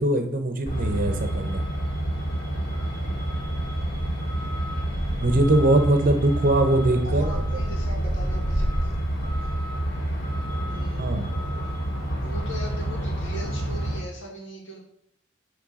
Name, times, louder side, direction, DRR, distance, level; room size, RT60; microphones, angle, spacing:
voice 1, 0.0-1.6 5.2-7.6 11.0-11.3, right 1 dB, 45° right, 6 dB, 0.9 m, -22 dB
Truck, 0.7-14.0, right 1 dB, 50° left, 2.5 m, -28 dB
voice 2, 5.9-6.4 7.0-8.9 9.4-9.6 10.7-11.2 12.2-14.8, equal, 65° left, 0 dB, 2.1 m, -40 dB
9.8 x 3.4 x 4.9 m, 0.68 s
head